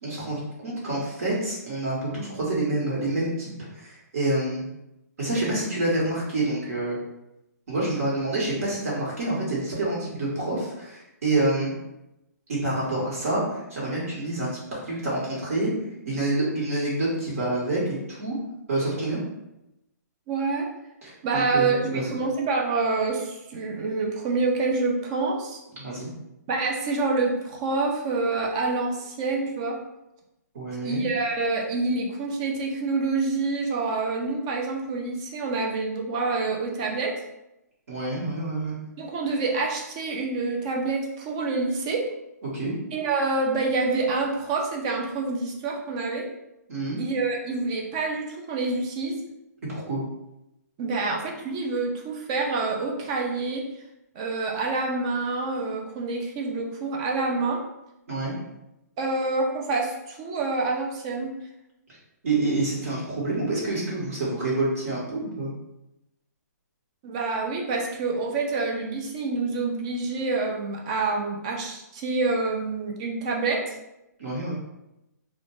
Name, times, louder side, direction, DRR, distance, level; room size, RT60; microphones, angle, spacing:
voice 1, 0.0-4.6 5.2-7.0 7.7-11.7 12.5-15.7 16.0-18.4 18.7-19.2 21.0-22.1 25.8-26.1 30.5-31.0 37.9-38.9 42.5-42.7 46.7-47.0 49.7-50.0 58.1-58.3 62.2-65.5 74.2-74.5, right 2 dB, 55° right, -5 dB, 1.0 m, -27 dB
voice 2, 20.3-20.7 21.2-25.6 26.5-29.8 30.8-37.2 39.0-42.1 42.9-46.3 47.0-49.2 50.8-53.6 54.2-57.6 59.0-61.3 67.0-73.7, right 3 dB, 20° right, 1 dB, 0.3 m, -27 dB
2.4 x 2.1 x 3.0 m, 0.89 s
hypercardioid pair, 160°, 9 cm